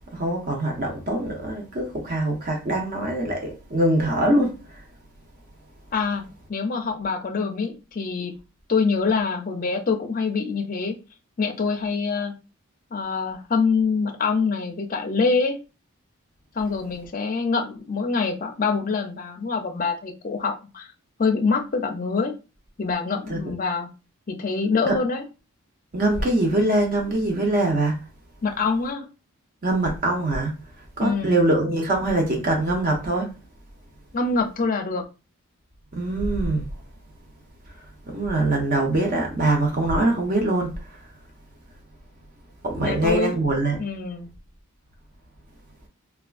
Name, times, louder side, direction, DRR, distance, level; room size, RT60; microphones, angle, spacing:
voice 1, 0.1-4.8 23.3-23.4 24.9-25.0 25.9-28.0 29.6-30.5 31.0-33.3 35.9-36.7 38.1-40.7 42.6-43.8, right 2 dB, 40° right, 0.6 m, -23 dB
voice 2, 5.9-6.2 6.5-8.3 8.7-11.0 11.4-12.3 12.9-15.6 16.5-20.9 21.2-22.3 22.8-23.9 24.3-25.2 28.4-29.1 31.0-31.4 34.1-35.0 42.8-43.3 43.8-44.3, left 4 dB, 40° left, 0.5 m, -25 dB
3.4 x 2.3 x 2.4 m
head